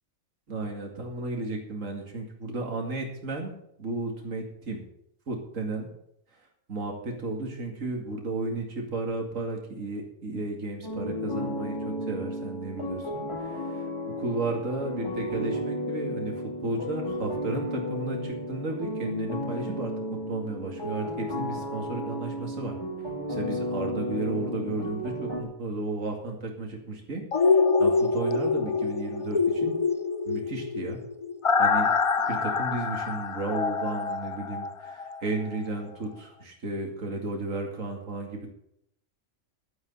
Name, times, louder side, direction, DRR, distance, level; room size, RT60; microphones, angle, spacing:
voice 1, 0.5-3.5 3.8-4.8 5.3-5.9 6.7-13.8 14.2-16.3 16.6-22.7 23.3-29.7 30.3-31.0 31.6-31.9 32.3-38.5, right 2 dB, 70° right, 1 dB, 2.6 m, -33 dB
sound 1, 10.8-25.4, equal, 20° left, 2.6 m, -33 dB
sound 2, 27.3-35.2 35.5-35.6, left 4 dB, 50° left, 0.4 m, -25 dB
11.5 x 9.6 x 7.1 m, 0.75 s
omnidirectional pair, 1.4 m